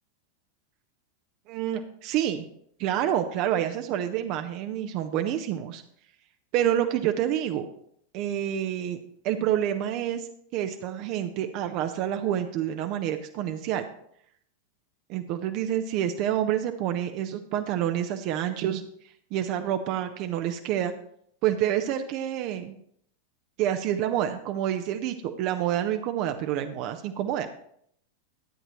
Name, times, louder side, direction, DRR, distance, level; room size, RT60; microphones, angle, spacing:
voice 1, 1.5-2.4 2.8-5.8 6.5-7.7 8.1-9.0 9.2-10.3 10.5-13.9 15.1-18.8 19.3-20.9 21.4-22.8 23.6-27.5, right 11 dB, 40° right, 7 dB, 0.6 m, -28 dB
12.5 x 8.7 x 3.1 m, 0.67 s
figure-of-eight pair, 90°, 0 cm